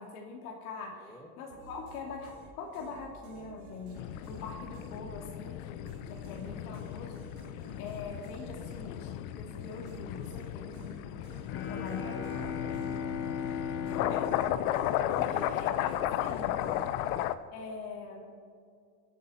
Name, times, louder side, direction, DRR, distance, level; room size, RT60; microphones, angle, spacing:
voice 1, 0.0-1.1 1.4-11.2 11.5-12.2 14.1-14.3 14.7-14.9 15.1-16.6 17.5-18.4, left 4 dB, 90° left, 0 dB, 2.6 m, -44 dB
voice 2, 0.9-1.3 7.5-8.1 10.6-11.0 11.6-14.2 15.1-15.6 16.6-16.9, equal, 5° left, 3 dB, 1.3 m, -50 dB
sound 1, 1.5-5.5 5.9-13.5 13.9-17.3, right 2 dB, 60° right, 4.4 m, -52 dB
sound 2, 4.0-17.3, left 12 dB, 70° left, 0.7 m, -35 dB
Bowed string instrument, 11.5-15.8, left 7 dB, 30° left, 0.8 m, -37 dB
25.5 x 8.6 x 4.4 m, 2.2 s
cardioid pair, 160°, 43 cm